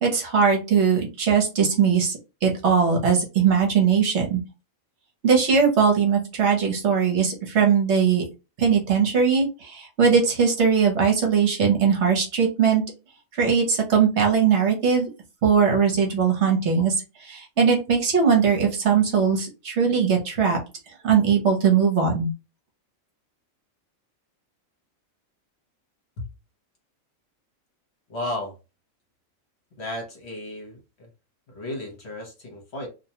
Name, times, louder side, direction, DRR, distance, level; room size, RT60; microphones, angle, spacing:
voice 1, 0.0-4.4 5.2-8.2 8.6-12.8 13.3-15.1 15.4-16.9 17.2-20.6 21.0-22.3, right 6 dB, 60° right, 1.0 m, -20 dB
voice 2, 28.1-28.5 29.8-31.1 31.5-32.9, left 1 dB, 55° left, 1.1 m, -34 dB
2.5 x 2.1 x 2.8 m
omnidirectional pair, 1.4 m